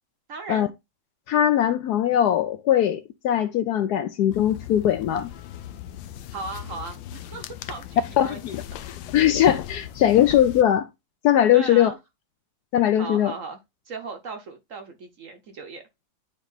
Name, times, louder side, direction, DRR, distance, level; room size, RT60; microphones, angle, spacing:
voice 1, 0.3-0.7 6.3-8.4 9.0-9.2 11.5-12.0 12.9-13.6 13.9-15.8, right 4 dB, 55° right, 1.0 m, -37 dB
voice 2, 1.3-5.3 8.2-8.5 9.1-10.9 11.2-11.9 12.7-13.3, left 11 dB, 70° left, 1.0 m, -20 dB
sound 1, 4.3-10.6, left 12 dB, 90° left, 1.4 m, -37 dB
9.0 x 3.2 x 4.0 m
omnidirectional pair, 2.0 m